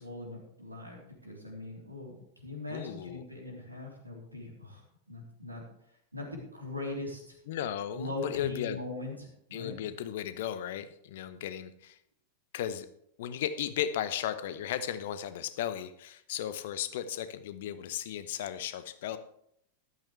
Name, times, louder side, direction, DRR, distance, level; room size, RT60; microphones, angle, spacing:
voice 1, 0.0-4.8 5.1-5.6 6.1-7.4 7.9-9.7, left 2 dB, 85° right, -1 dB, 3.4 m, -40 dB
voice 2, 2.7-3.3 7.5-8.8 9.5-12.0 12.5-12.9 13.2-19.2, left 10 dB, 55° left, 12 dB, 0.9 m, -35 dB
13.5 x 12.0 x 3.3 m, 0.73 s
figure-of-eight pair, 90°, 0 cm